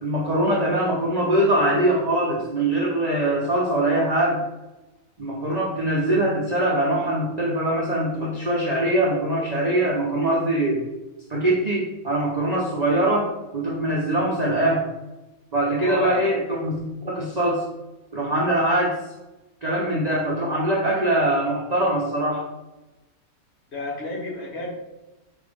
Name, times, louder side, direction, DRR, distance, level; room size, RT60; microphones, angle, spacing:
voice 1, 0.0-4.4 5.2-10.8 11.3-14.9 15.5-17.6 18.1-19.0 19.6-22.4, right 1 dB, 45° right, -5 dB, 0.5 m, -22 dB
voice 2, 15.8-16.2 23.7-24.7, left 1 dB, 50° left, -3 dB, 1.1 m, -31 dB
5.0 x 2.6 x 3.4 m, 1.0 s
omnidirectional pair, 1.6 m